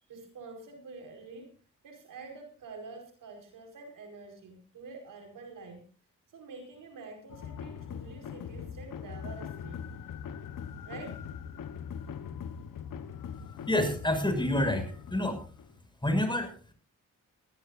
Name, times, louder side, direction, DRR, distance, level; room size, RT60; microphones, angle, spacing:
voice 1, 0.1-1.5 1.8-5.8 6.3-9.8 10.8-11.2, right 4 dB, 80° right, 4 dB, 4.9 m, -47 dB
sound 1, 7.3-15.8, left 7 dB, 80° left, 1.3 m, -41 dB
voice 2, 13.7-14.8 15.1-15.4 16.0-16.7, left 1 dB, 15° left, 7 dB, 6.8 m, -28 dB
20.5 x 16.0 x 2.6 m, 0.39 s
supercardioid pair, 50°, 32 cm